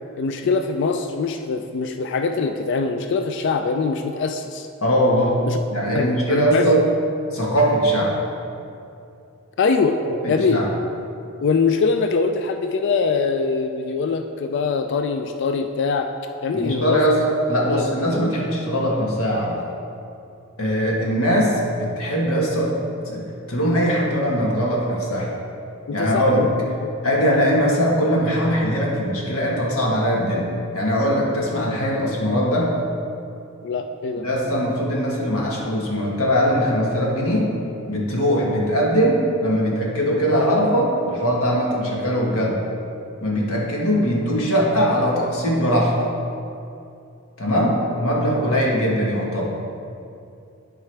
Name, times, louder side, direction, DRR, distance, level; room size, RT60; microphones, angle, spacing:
voice 1, 0.2-4.7 5.5-5.6 5.9-6.7 9.6-10.0 10.3-10.6 11.4-16.1 16.4-17.0 17.7-17.9 25.9-26.9 33.6-34.2 48.5-48.6, left 4 dB, 55° left, 6 dB, 0.3 m, -23 dB
voice 2, 4.8-6.9 7.3-8.2 10.1-10.7 16.5-19.6 20.6-22.8 23.0-25.3 25.9-26.5 27.0-32.7 34.2-37.5 37.9-42.6 43.2-46.0 47.4-49.5, equal, 80° left, -3 dB, 1.4 m, -21 dB
11.0 x 4.7 x 3.4 m, 2.6 s
head